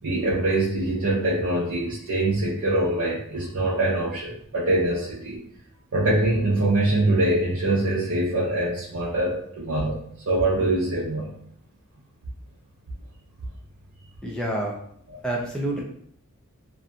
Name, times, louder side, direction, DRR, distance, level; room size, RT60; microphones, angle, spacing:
voice 1, 0.0-5.4 5.9-10.0 10.3-11.3 15.1-15.2, right 2 dB, 65° right, -8 dB, 0.6 m, -24 dB
voice 2, 14.2-14.8 15.2-15.8, right 1 dB, 5° left, -2 dB, 0.5 m, -27 dB
2.6 x 2.6 x 2.3 m, 0.66 s
head